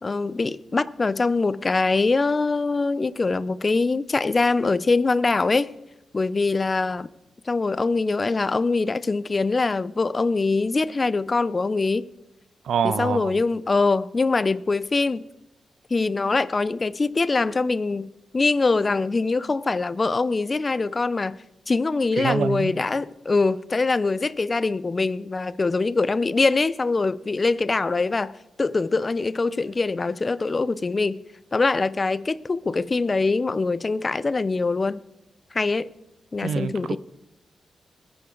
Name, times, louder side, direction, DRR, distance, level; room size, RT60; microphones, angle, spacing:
voice 1, 0.0-5.7 6.1-7.1 7.5-12.1 12.8-15.3 15.9-21.4 21.7-28.3 28.6-31.2 31.5-35.0 35.5-35.9 36.3-37.0, left 3 dB, 35° left, 0.6 m, -23 dB
voice 2, 12.6-13.3 22.2-22.8 36.4-37.0, right 7 dB, 85° right, 0.5 m, -25 dB
21.0 x 8.7 x 3.9 m
cardioid pair, 65°, 0 cm